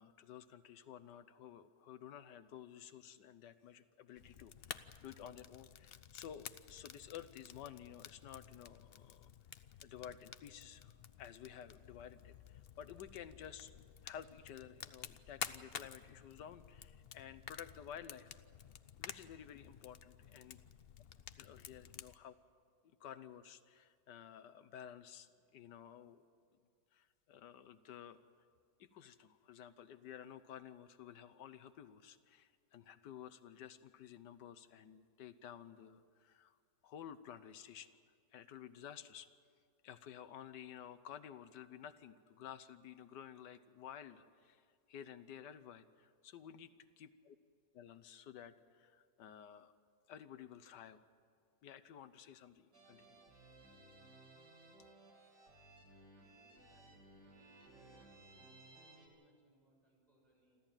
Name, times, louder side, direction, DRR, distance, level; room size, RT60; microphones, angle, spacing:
voice 1, 0.0-9.3 9.8-13.7 14.0-18.3 19.0-20.6 21.4-22.4 22.8-26.3 26.9-28.2 28.8-36.6 36.8-37.9 38.3-39.3 39.8-46.7 47.0-47.3 47.7-49.7 50.1-51.0 51.6-53.3, left 9 dB, 90° left, 12 dB, 1.5 m, -53 dB
Fire, 4.2-22.1, left 8 dB, 65° left, 0.6 m, -52 dB
sound 1, 52.7-59.1, right 2 dB, 75° right, 3.6 m, -60 dB
voice 2, 56.4-60.6, right 1 dB, 25° right, -2 dB, 6.5 m, -72 dB
28.0 x 13.5 x 9.1 m, 2.1 s
omnidirectional pair, 1.8 m